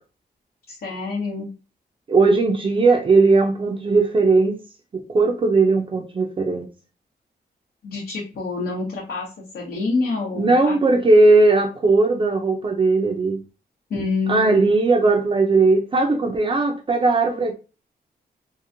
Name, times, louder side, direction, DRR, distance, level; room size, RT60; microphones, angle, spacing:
voice 1, 0.7-1.5 7.8-9.3 9.5-10.8 13.9-14.7, left 3 dB, 75° left, 0.9 m, -27 dB
voice 2, 2.1-4.6 4.9-6.7 10.4-13.4 14.3-17.5, right 3 dB, 30° right, 0.4 m, -18 dB
3.0 x 2.5 x 2.5 m
wide cardioid pair, 130°, 16 cm